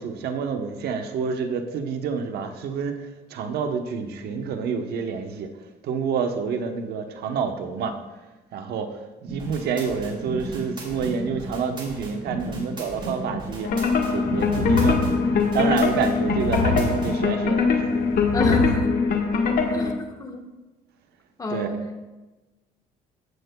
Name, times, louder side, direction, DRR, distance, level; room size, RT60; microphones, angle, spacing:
voice 1, 0.0-5.5 5.8-8.0 8.5-13.7 14.1-17.9 21.5-21.7, right 5 dB, 70° right, 5 dB, 1.0 m, -28 dB
sound 1, 9.3-17.1, right 2 dB, 30° right, 3.1 m, -34 dB
sound 2, 13.6-19.9, left 4 dB, 60° left, 1.3 m, -22 dB
voice 2, 18.3-19.0 19.7-20.4 21.4-22.0, left 2 dB, 20° left, 3 dB, 1.2 m, -29 dB
14.5 x 7.8 x 2.3 m, 1.1 s
cardioid pair, 110°, 17 cm